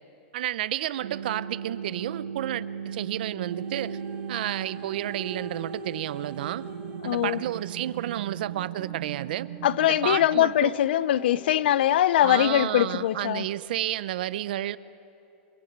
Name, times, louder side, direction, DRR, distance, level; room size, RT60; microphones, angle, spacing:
voice 1, 0.3-4.0 4.3-6.7 7.0-9.5 9.9-10.7 12.2-14.8, right 13 dB, 50° right, 0.6 m, -31 dB
sound 1, 1.0-10.4, right 7 dB, 90° right, 1.3 m, -37 dB
sound 2, 3.5-12.6 13.3-13.4, right 6 dB, 25° right, 3.0 m, -46 dB
voice 2, 7.0-7.4 9.6-13.5, left 12 dB, 55° left, 0.6 m, -22 dB
28.0 x 20.5 x 8.8 m
supercardioid pair, 175°, 7 cm